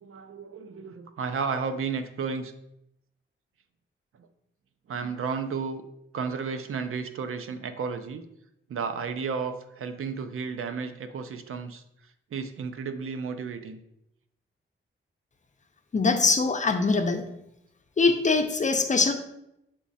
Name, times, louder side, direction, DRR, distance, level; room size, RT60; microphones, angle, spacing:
voice 1, 0.0-2.5 4.2-4.3 4.9-5.8 6.1-8.2 8.7-11.8 12.3-13.8, right 5 dB, 85° right, 9 dB, 0.6 m, -33 dB
voice 2, 15.9-17.2 18.0-19.1, left 4 dB, 35° left, 5 dB, 0.6 m, -23 dB
7.3 x 3.7 x 4.1 m, 0.81 s
wide cardioid pair, 165°, 21 cm